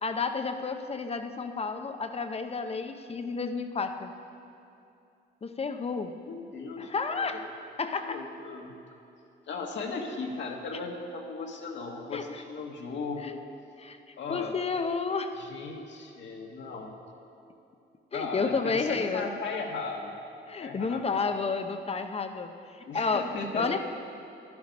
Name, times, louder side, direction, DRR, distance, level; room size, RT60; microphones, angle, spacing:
voice 1, 0.0-4.1 5.4-6.1 6.8-7.5 7.8-8.2 12.1-12.2 13.2-13.3 13.8-15.4 18.1-19.3 20.5-23.8, left 4 dB, 30° left, 7 dB, 0.7 m, -31 dB
voice 2, 6.2-7.4 8.0-8.7 9.5-13.4 14.2-14.5 15.4-16.9 18.1-20.2 20.6-21.3 22.8-23.8, left 4 dB, 65° left, 1 dB, 1.7 m, -37 dB
11.5 x 11.0 x 5.3 m, 2.6 s
cardioid pair, 90°, 20 cm